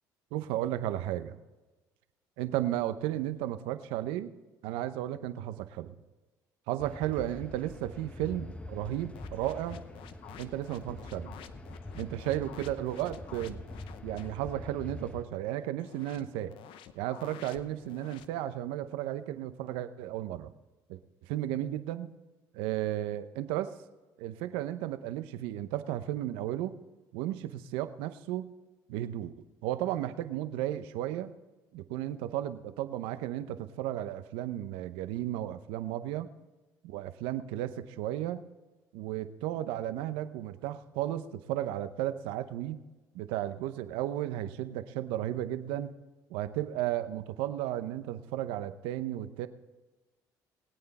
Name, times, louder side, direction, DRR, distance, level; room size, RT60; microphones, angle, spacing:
voice 1, 0.3-1.4 2.4-4.3 4.6-5.9 6.7-9.8 10.4-11.3 11.9-13.6 14.0-16.5 16.9-20.5 20.9-21.0 21.3-22.1 22.5-23.8 24.2-26.7 27.1-28.5 28.9-29.3 29.6-31.3 31.7-36.3 36.8-38.4 38.9-42.8 43.1-45.9 46.3-49.5, right 13 dB, 85° right, 11 dB, 0.8 m, -34 dB
sound 1, 6.8-15.3, left 2 dB, 15° left, 1.0 m, -45 dB
sound 2, 9.1-14.4 15.8-18.3, left 10 dB, 75° left, 0.7 m, -51 dB
21.0 x 8.8 x 4.2 m, 1.1 s
supercardioid pair, 75°, 9 cm